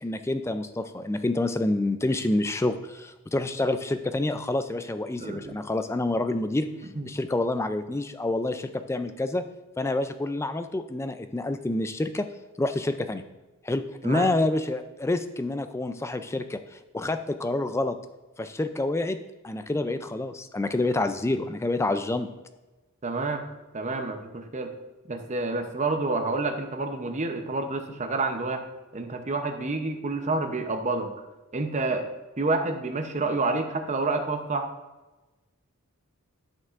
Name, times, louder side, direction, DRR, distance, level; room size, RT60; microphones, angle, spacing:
voice 1, 0.0-6.7 7.0-9.4 9.8-12.3 12.6-13.2 13.6-18.0 18.4-19.2 19.4-22.3, left 2 dB, 10° left, 9 dB, 0.3 m, -28 dB
voice 2, 5.2-5.6 7.0-7.1 14.0-14.3 23.0-23.4 23.7-24.7 25.1-28.6 28.9-31.1 31.5-32.0 32.4-34.7, right 3 dB, 30° right, 5 dB, 0.7 m, -28 dB
13.0 x 5.4 x 2.5 m, 1.1 s
head